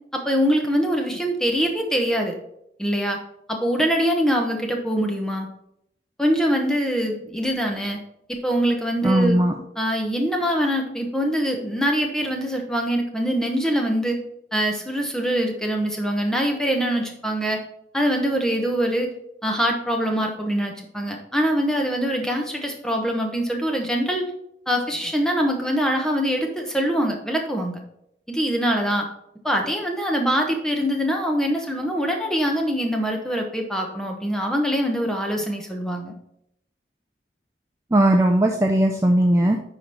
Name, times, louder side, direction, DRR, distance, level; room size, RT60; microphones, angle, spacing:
voice 1, 0.1-2.3 2.8-3.2 3.5-5.5 6.2-8.0 8.3-9.4 9.8-14.2 14.5-17.6 17.9-19.1 19.4-24.2 24.7-27.8 28.3-29.1 29.4-36.1, equal, 5° left, 2 dB, 1.1 m, -23 dB
voice 2, 9.0-9.6 37.9-39.6, right 1 dB, 15° right, 3 dB, 0.5 m, -18 dB
10.0 x 3.9 x 4.5 m, 0.77 s
head